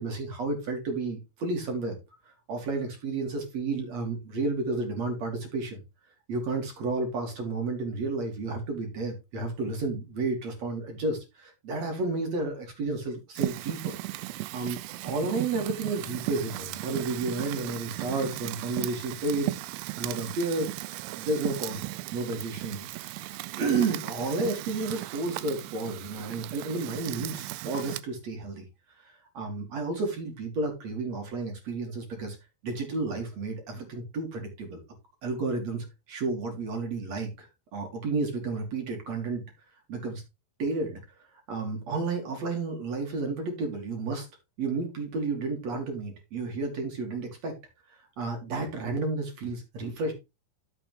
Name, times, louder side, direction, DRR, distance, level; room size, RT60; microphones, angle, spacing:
voice 1, 0.0-2.0 2.5-5.8 6.3-13.9 14.5-20.7 21.1-21.9 22.1-22.9 23.5-28.7 29.0-32.4 32.6-34.8 35.2-39.5 39.9-40.2 40.6-41.0 41.5-44.3 44.6-47.5 48.2-50.1, right 3 dB, 45° right, 3 dB, 2.8 m, -31 dB
Fire, 13.4-28.0, right 17 dB, 80° right, 2.5 m, -36 dB
11.5 x 7.1 x 3.2 m, 0.25 s
omnidirectional pair, 5.1 m